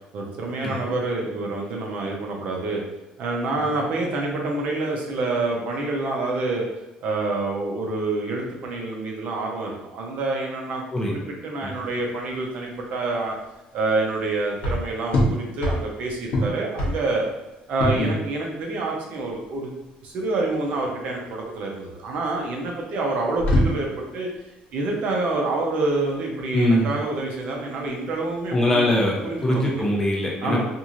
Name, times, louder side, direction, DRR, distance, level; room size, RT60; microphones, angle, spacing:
voice 1, 0.1-2.8 3.2-6.7 7.0-13.3 13.7-17.2 17.7-19.7 20.0-24.3 24.7-28.8 29.2-29.7 30.4-30.6, right 2 dB, 60° right, -1 dB, 0.7 m, -27 dB
sound 1, 11.7-29.9, equal, 60° left, 0.9 m, -29 dB
voice 2, 26.5-26.9 28.5-29.2 29.4-30.6, left 1 dB, 15° left, -3 dB, 0.6 m, -22 dB
3.0 x 2.6 x 2.5 m, 0.96 s
cardioid pair, 140°, 3 cm